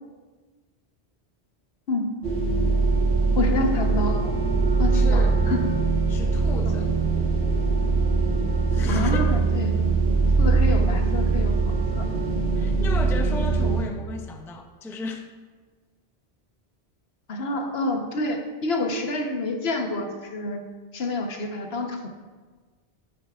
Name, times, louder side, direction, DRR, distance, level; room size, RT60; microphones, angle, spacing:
sound 1, 2.2-13.8, right 4 dB, 90° right, 1.6 m, -22 dB
voice 1, 3.4-4.3 4.8-5.6 6.7-6.8 8.9-9.8 10.4-12.0 17.3-20.6 20.9-22.1, left 2 dB, 70° left, 3 dB, 1.3 m, -28 dB
voice 2, 4.7-5.4 6.1-6.9 8.7-9.3 12.5-15.3, left 2 dB, 5° left, 4 dB, 0.4 m, -35 dB
10.5 x 9.3 x 2.4 m, 1.4 s
omnidirectional pair, 1.1 m